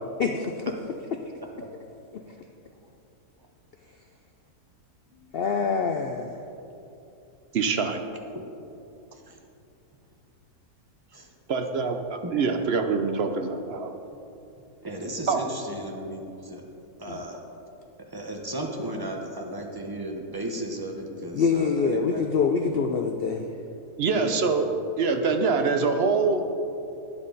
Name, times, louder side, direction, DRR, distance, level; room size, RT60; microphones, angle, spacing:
voice 1, 0.2-0.5 2.1-2.2 5.3-6.4 17.1-17.2 21.3-23.5, left 5 dB, 75° left, 4 dB, 0.5 m, -25 dB
voice 2, 7.5-8.0 11.5-13.9 15.3-15.4 24.0-24.7 25.0-26.4, right 4 dB, 55° right, 6 dB, 0.7 m, -24 dB
voice 3, 14.8-16.6 17.0-17.4 18.1-22.2 22.7-22.8 24.1-24.5, right 1 dB, 15° right, 1 dB, 0.9 m, -35 dB
12.0 x 9.7 x 4.0 m, 2.7 s
omnidirectional pair, 1.6 m